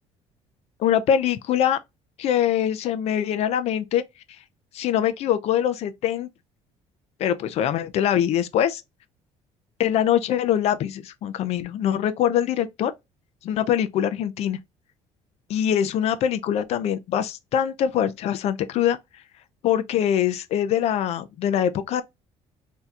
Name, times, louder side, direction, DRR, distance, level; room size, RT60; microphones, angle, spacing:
voice 1, 0.8-1.8 2.2-4.0 4.7-6.3 7.2-8.8 9.8-12.9 13.4-14.6 15.5-19.0 19.6-22.0, left 10 dB, 55° left, 0.5 m, -23 dB
4.1 x 2.7 x 2.3 m
cardioid pair, 145°, 13 cm